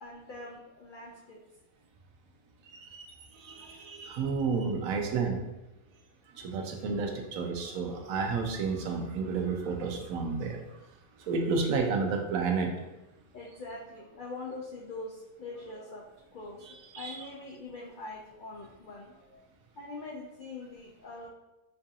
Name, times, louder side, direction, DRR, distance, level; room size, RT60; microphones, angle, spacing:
voice 1, 0.0-1.4 12.7-12.8 13.3-16.0 16.3-19.1 19.3-19.5 19.8-21.3, left 2 dB, 75° left, -3 dB, 0.4 m, -43 dB
voice 2, 2.7-5.4 6.3-10.8 11.2-12.7 16.9-17.2, right 4 dB, 85° right, 3 dB, 1.0 m, -31 dB
4.5 x 2.5 x 2.7 m, 0.96 s
omnidirectional pair, 1.4 m